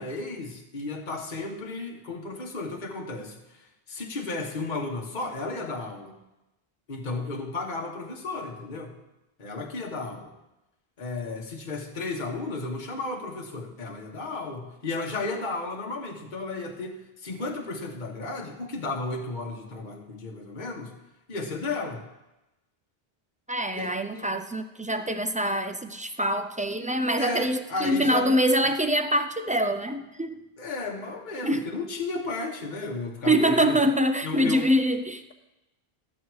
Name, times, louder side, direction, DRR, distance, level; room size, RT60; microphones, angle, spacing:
voice 1, 0.0-6.2 6.9-9.0 9.4-10.3 11.0-20.9 21.3-22.0 23.7-24.3 27.2-28.4 30.6-33.7 34.2-34.7, left 3 dB, 50° left, 1 dB, 1.4 m, -34 dB
voice 2, 23.5-30.4 31.4-31.7 33.3-35.3, right 1 dB, 15° right, 8 dB, 0.3 m, -25 dB
13.5 x 7.6 x 4.7 m, 0.96 s
omnidirectional pair, 1.0 m